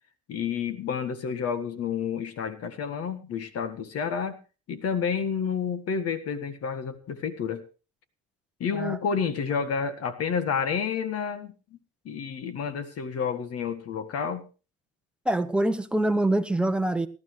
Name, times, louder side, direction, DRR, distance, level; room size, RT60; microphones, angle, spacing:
voice 1, 0.3-4.4 4.7-7.6 8.6-11.5 12.0-14.5, left 6 dB, 50° left, 1.7 m, -30 dB
voice 2, 15.2-17.1, right 1 dB, 5° right, 1.0 m, -25 dB
18.5 x 12.5 x 3.3 m
supercardioid pair, 90°, 31 cm